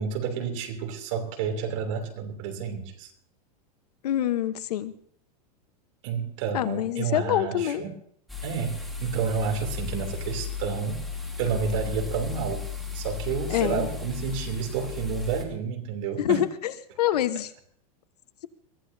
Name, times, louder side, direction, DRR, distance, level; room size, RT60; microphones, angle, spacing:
voice 1, 0.0-3.1 6.0-7.9 8.4-11.1 11.4-12.7 12.9-16.5, right 6 dB, 55° right, 4 dB, 3.1 m, -30 dB
voice 2, 4.0-4.9 6.5-7.8 13.5-13.9 16.2-16.7 17.0-17.5, left 12 dB, 80° left, 12 dB, 1.1 m, -26 dB
sound 1, 8.3-15.4, left 6 dB, ahead, 2.0 m, -35 dB
22.5 x 15.5 x 2.8 m, 0.63 s
supercardioid pair, 155°, 20 cm